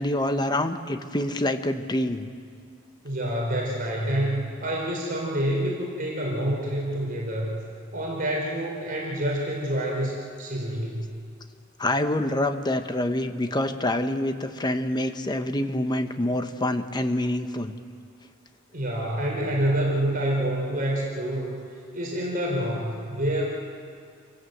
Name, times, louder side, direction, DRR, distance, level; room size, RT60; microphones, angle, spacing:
voice 1, 0.0-2.3 11.8-17.7, left 1 dB, 20° left, 8 dB, 1.1 m, -26 dB
voice 2, 3.0-7.6 7.9-11.2 18.7-21.6 21.9-23.4, right 1 dB, 45° right, -2 dB, 4.1 m, -27 dB
27.5 x 17.5 x 8.0 m, 2.2 s
head